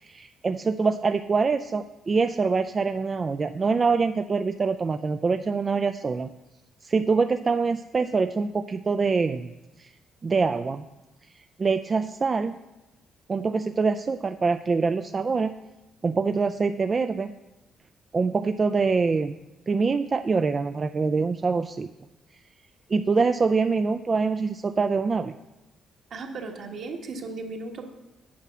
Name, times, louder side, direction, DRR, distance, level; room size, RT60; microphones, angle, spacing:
voice 1, 0.0-6.3 6.8-9.5 9.8-9.9 10.2-10.9 11.6-12.6 13.3-15.6 16.0-17.3 18.1-19.4 19.7-21.9 22.9-25.3, right 4 dB, 35° right, 8 dB, 0.3 m, -24 dB
voice 2, 26.1-27.9, right 3 dB, 65° right, 2 dB, 1.6 m, -36 dB
8.5 x 6.9 x 6.1 m, 1.0 s
cardioid pair, 90°, 0 cm